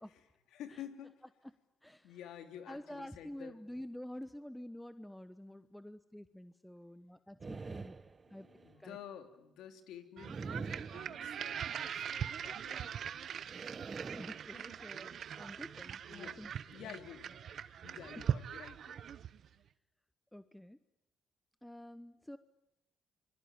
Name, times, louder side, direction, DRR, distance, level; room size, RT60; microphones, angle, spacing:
voice 1, 0.5-1.2 2.0-3.6 8.2-12.9 16.1-16.4 16.7-17.5 17.8-19.0, left 10 dB, 85° left, 6 dB, 3.2 m, -51 dB
voice 2, 1.8-2.2 2.7-8.0 8.3-8.5 8.8-9.0 14.1-16.5 16.8-17.0 20.3-20.8 21.6-22.4, left 1 dB, 5° left, 11 dB, 1.0 m, -48 dB
sound 1, 7.4-8.8 10.2-11.7 13.5-15.0, right 4 dB, 30° right, 1.0 m, -46 dB
sound 2, 10.2-19.5, right 8 dB, 65° right, 1.0 m, -41 dB
26.5 x 23.5 x 9.0 m, 0.87 s
cardioid pair, 90°, 0 cm